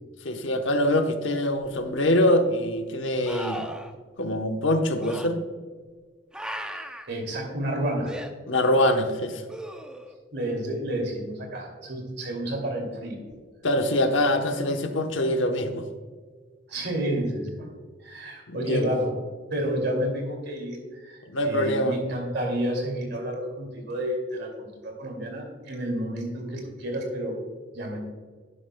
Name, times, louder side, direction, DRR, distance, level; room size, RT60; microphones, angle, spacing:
voice 1, 0.2-3.6 4.2-5.4 8.5-9.4 13.6-15.9 18.5-18.9 21.3-22.0, left 1 dB, 70° left, 6 dB, 1.0 m, -24 dB
sound 1, 1.6-1.7 3.2-3.9 5.0-5.3 6.3-7.1 8.0-8.3 9.5-10.2 13.3-13.4, equal, 5° right, 0.6 m, -36 dB
voice 2, 6.7-8.1 10.3-13.2 16.7-17.7 18.0-19.1 19.5-27.4 27.7-28.0, right 1 dB, 60° right, 1 dB, 2.5 m, -30 dB
11.0 x 10.5 x 2.2 m, 1.5 s
head